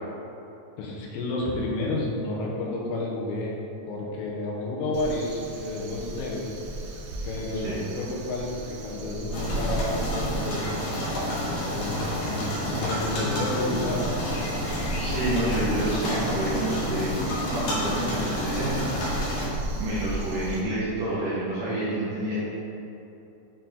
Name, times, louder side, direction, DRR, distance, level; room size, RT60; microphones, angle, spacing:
voice 1, 0.8-3.6 3.9-6.5 7.2-10.7 11.4-14.1 20.6-20.7, left 2 dB, 80° left, -2 dB, 3.0 m, -31 dB
Crow, 4.9-20.6, right 2 dB, 90° right, 1.9 m, -36 dB
sound 1, 9.3-19.5, left 1 dB, 60° left, 2.6 m, -29 dB
voice 2, 14.9-17.1 17.5-18.9 19.8-22.4, right 1 dB, 70° right, -9 dB, 2.1 m, -28 dB
8.7 x 4.6 x 3.9 m, 2.9 s
omnidirectional pair, 5.1 m